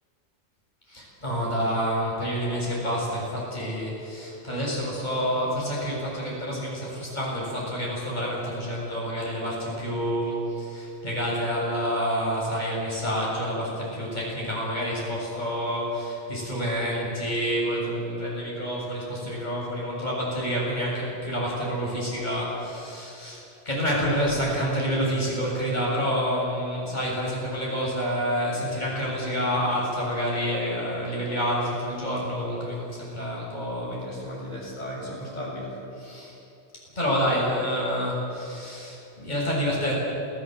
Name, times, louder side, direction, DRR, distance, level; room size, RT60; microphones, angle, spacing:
voice 1, 0.9-36.4 37.0-39.9, equal, 40° left, -5 dB, 7.6 m, -28 dB
28.0 x 17.0 x 8.1 m, 2.9 s
omnidirectional pair, 1.1 m